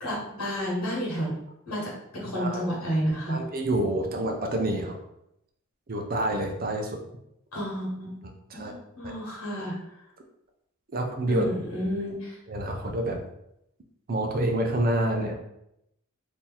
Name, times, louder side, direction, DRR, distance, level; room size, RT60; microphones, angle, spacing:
voice 1, 0.0-1.3 1.7-3.4 7.5-8.1 8.6-9.8 11.3-12.4, equal, 80° left, -4 dB, 1.3 m, -30 dB
voice 2, 2.3-2.7 3.3-5.0 5.9-7.0 8.5-8.7 10.9-11.4 12.5-13.2 14.1-15.3, right 1 dB, 40° right, 3 dB, 0.5 m, -27 dB
2.9 x 2.7 x 3.8 m, 0.81 s
head